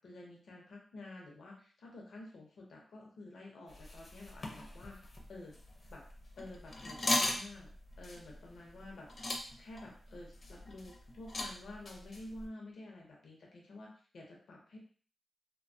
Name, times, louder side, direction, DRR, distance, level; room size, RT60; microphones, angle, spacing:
voice 1, 0.0-5.0 5.3-5.5 5.9-6.0 6.4-7.7 8.0-14.8, left 2 dB, 85° left, -2 dB, 0.7 m, -50 dB
sound 1, 3.7-12.5, left 1 dB, 45° left, 0.5 m, -40 dB
2.6 x 2.2 x 2.6 m, 0.44 s
wide cardioid pair, 105°, 0 cm